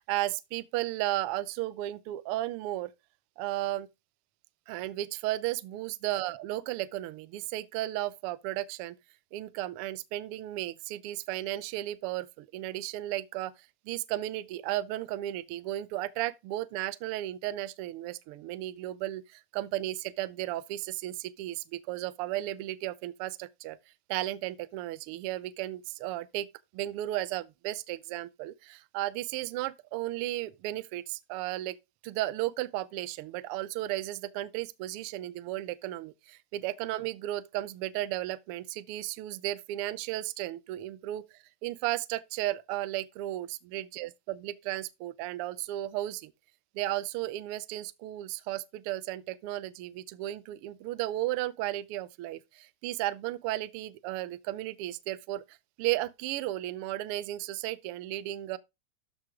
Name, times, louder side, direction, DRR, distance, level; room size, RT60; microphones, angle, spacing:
voice 1, 0.0-2.9 3.4-3.9 4.7-8.9 9.3-13.5 13.9-23.8 24.1-26.5 26.7-31.8 32.0-41.2 41.6-46.3 46.7-58.6, right 15 dB, 80° right, 1.2 m, -34 dB
12.5 x 6.4 x 3.6 m
omnidirectional pair, 3.4 m